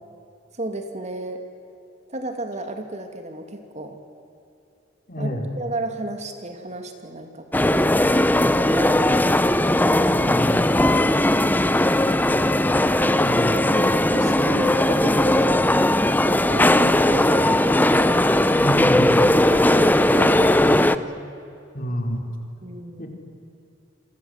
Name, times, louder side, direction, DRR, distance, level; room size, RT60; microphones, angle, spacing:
voice 1, 0.5-1.4 2.1-4.0 5.2-8.0 8.5-9.2 10.2-10.4 13.2-18.3 19.5-21.2 22.6-23.1, right 1 dB, 40° right, 5 dB, 2.7 m, -33 dB
voice 2, 5.1-5.4 10.2-10.6 13.2-13.5 18.5-19.3 20.6-20.7 21.7-22.2 23.0-23.1, equal, 50° left, 2 dB, 4.7 m, -27 dB
sound 1, 7.5-21.0, left 1 dB, 10° left, 0.8 m, -18 dB
29.0 x 24.0 x 8.3 m, 2.7 s
head